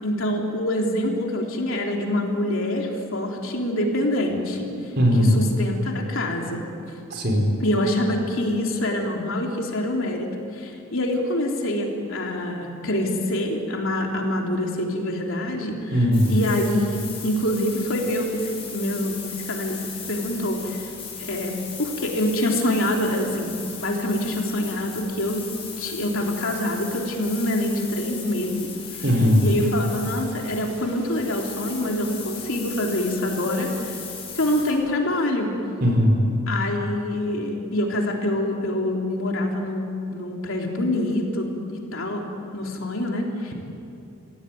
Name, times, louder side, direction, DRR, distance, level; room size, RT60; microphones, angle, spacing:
voice 1, 0.0-4.7 5.2-6.7 7.6-15.9 16.3-20.9 21.2-21.5 21.8-25.4 25.8-29.0 29.4-34.0 34.4-35.6 36.5-42.2 42.5-43.5, left 1 dB, 65° left, 0 dB, 3.5 m, -25 dB
voice 2, 5.0-5.4 7.1-7.5 15.9-16.3 29.0-29.5 35.8-36.2, equal, 50° right, 1 dB, 4.6 m, -18 dB
sound 1, 16.1-34.7, left 6 dB, 25° left, 6.1 m, -38 dB
25.5 x 17.0 x 9.3 m, 2.7 s
head